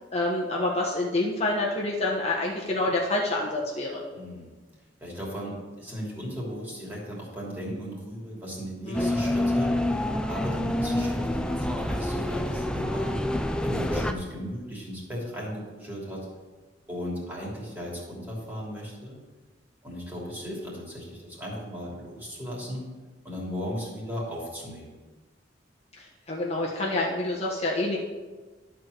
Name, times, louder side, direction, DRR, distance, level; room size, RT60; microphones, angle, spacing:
voice 1, 0.1-4.0 8.8-9.2 26.0-28.0, left 2 dB, 35° left, -3 dB, 1.2 m, -27 dB
voice 2, 4.1-4.5 5.0-9.7 10.3-13.2 13.6-16.3 16.9-19.2 19.8-22.8 23.2-24.9, equal, 10° right, -4 dB, 2.9 m, -36 dB
sound 1, 8.9-14.1, left 1 dB, 5° left, 0.5 m, -27 dB
11.5 x 4.6 x 6.6 m, 1.3 s
head